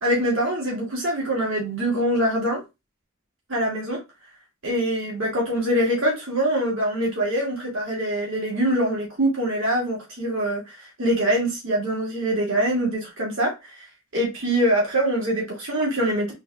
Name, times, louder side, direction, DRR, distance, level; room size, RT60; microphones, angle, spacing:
voice 1, 0.0-2.6 3.5-4.0 4.6-13.5 14.1-16.3, right 1 dB, 75° right, 2.2 m, -24 dB
4.0 x 3.7 x 3.4 m
head